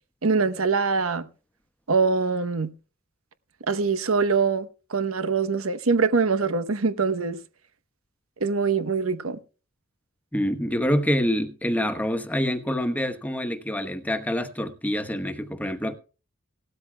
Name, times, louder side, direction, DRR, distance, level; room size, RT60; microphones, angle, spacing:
voice 1, 0.2-1.3 1.9-2.7 3.7-7.4 8.4-9.4, right 4 dB, 90° right, 1.0 m, -23 dB
voice 2, 10.3-15.9, equal, 10° left, 1.1 m, -26 dB
17.5 x 13.0 x 2.3 m
head